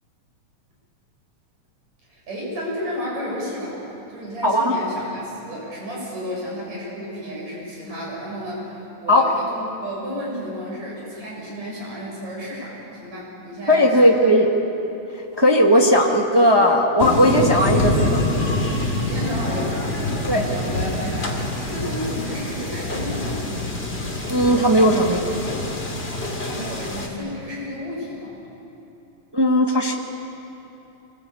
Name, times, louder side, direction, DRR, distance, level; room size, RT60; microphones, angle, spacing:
voice 1, 2.1-3.8 4.1-14.3 19.0-23.4 26.4-28.4, equal, 65° right, -4 dB, 7.9 m, -32 dB
voice 2, 4.4-4.7 9.1-9.2 13.7-14.5 15.4-18.2 20.3-20.4 24.3-25.2 29.3-29.9, equal, 20° right, 0 dB, 0.6 m, -17 dB
sound 1, 17.0-27.1, left 1 dB, 20° left, 2.4 m, -25 dB
25.0 x 20.5 x 8.5 m, 3.0 s
omnidirectional pair, 3.4 m